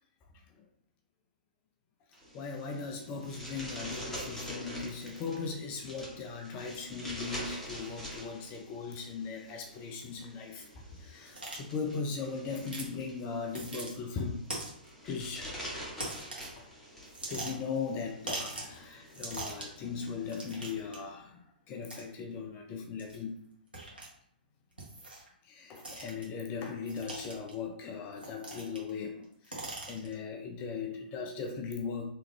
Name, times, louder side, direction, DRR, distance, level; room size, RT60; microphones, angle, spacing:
sound 1, 2.1-20.3, equal, 5° left, 1.1 m, -46 dB
voice 1, 2.3-14.4 15.0-15.6 16.6-16.7 17.2-23.4 25.4-32.1, left 5 dB, 25° left, 3 dB, 0.5 m, -38 dB
sound 2, 11.3-11.6 12.7-12.9 13.5-13.9 14.5-14.9 16.0-16.6 17.1-17.8 18.3-18.8 19.1-19.8 20.3-21.0 21.9-22.0 23.0-23.2 23.7-24.1 24.8-25.3 25.7-26.2 26.9-27.5 28.2-28.9 29.2-30.1, right 2 dB, 75° right, 1.5 m, -41 dB
3.4 x 3.3 x 3.2 m, 0.69 s
figure-of-eight pair, 120°, 5 cm